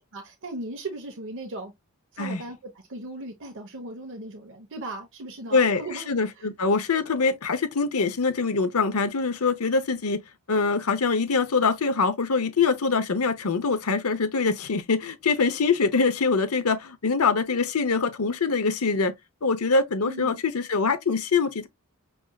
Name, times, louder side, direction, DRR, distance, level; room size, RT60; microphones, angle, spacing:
voice 1, 0.0-1.7 2.1-6.1 6.4-6.5 20.0-20.4, right 2 dB, 60° right, 1.2 m, -37 dB
voice 2, 5.5-10.2 10.5-19.1 19.4-21.7, left 4 dB, 80° left, 0.8 m, -24 dB
6.3 x 3.5 x 2.3 m
head